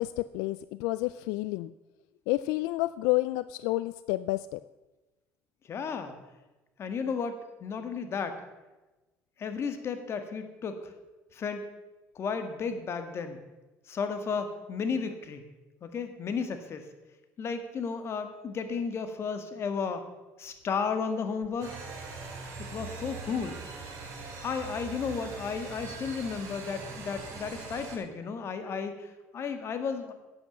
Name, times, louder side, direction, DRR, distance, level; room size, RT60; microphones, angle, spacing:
voice 1, 0.0-1.7 2.3-4.6, left 18 dB, 85° left, 15 dB, 0.3 m, -29 dB
voice 2, 5.7-6.1 6.8-8.4 9.4-10.9 11.3-11.7 12.2-13.4 13.9-15.4 15.8-16.9 17.4-20.0 20.4-21.8 22.7-23.6 24.4-30.1, left 5 dB, 45° left, 8 dB, 1.9 m, -33 dB
sound 1, 21.6-28.0, right 4 dB, 60° right, 4.7 m, -41 dB
12.0 x 8.5 x 7.2 m, 1.1 s
supercardioid pair, 100°, 6 cm